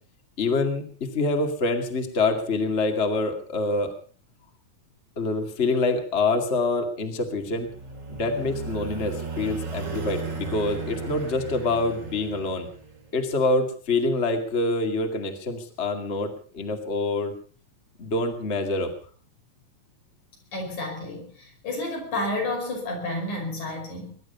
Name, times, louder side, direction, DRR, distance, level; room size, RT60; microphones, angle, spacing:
voice 1, 0.4-3.9 5.2-7.7 8.1-12.7 13.1-17.3 18.0-18.9, left 3 dB, 25° left, 4 dB, 2.2 m, -26 dB
sound 1, 7.3-13.1, right 4 dB, 40° right, 3.4 m, -35 dB
voice 2, 20.5-24.1, left 2 dB, 85° left, 1 dB, 6.9 m, -31 dB
22.0 x 11.5 x 5.5 m, 0.42 s
omnidirectional pair, 3.3 m